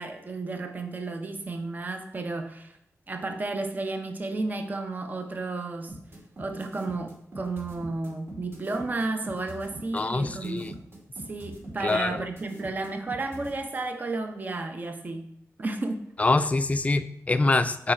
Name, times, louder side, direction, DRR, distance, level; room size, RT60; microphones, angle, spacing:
voice 1, 0.0-2.8 3.1-5.9 6.4-10.7 11.2-15.3 15.6-16.3, right 3 dB, 35° right, 5 dB, 0.7 m, -32 dB
sound 1, 5.9-13.5, right 1 dB, 50° right, 2.4 m, -42 dB
voice 2, 9.9-10.7 11.8-12.2 16.2-17.9, left 3 dB, 25° left, 11 dB, 0.4 m, -25 dB
7.0 x 4.8 x 4.4 m, 0.74 s
wide cardioid pair, 115°, 5 cm